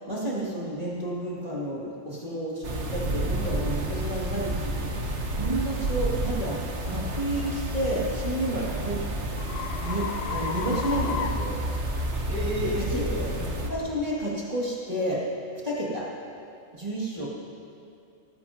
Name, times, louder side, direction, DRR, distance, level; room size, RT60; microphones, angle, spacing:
voice 1, 0.0-9.0 9.2-9.4 9.8-11.6 12.6-12.7 13.6-15.2 15.6-16.1 16.7-17.3, right 1 dB, 30° right, -7 dB, 2.4 m, -31 dB
sound 1, 2.6-13.7, right 1 dB, 60° right, 1.5 m, -30 dB
sound 2, 3.5-3.6 4.1-4.3 4.9-5.1 7.8-12.3, left 6 dB, 75° left, 1.1 m, -35 dB
voice 2, 12.3-13.4 17.1-17.3, equal, 10° left, -7 dB, 2.3 m, -32 dB
19.0 x 15.0 x 2.9 m, 2.6 s
omnidirectional pair, 1.3 m